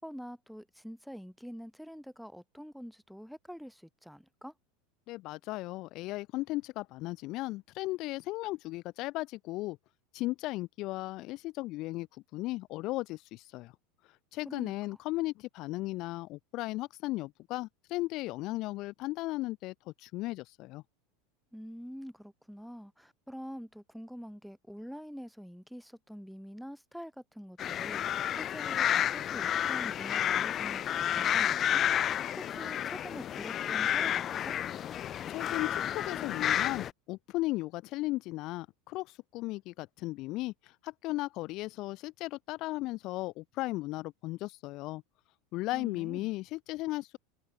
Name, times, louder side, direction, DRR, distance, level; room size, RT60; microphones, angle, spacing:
voice 1, 0.0-4.5 14.5-14.7 21.5-31.8 32.4-34.6 45.7-46.3, equal, ahead, 5.3 m, -46 dB
voice 2, 5.1-9.8 10.1-12.1 12.3-13.7 14.3-20.8 35.3-45.0 45.5-47.2, left 19 dB, 50° left, 3.8 m, -36 dB
sound 1, 27.6-36.9, left 10 dB, 35° left, 3.5 m, -31 dB
supercardioid pair, 130°, 0 cm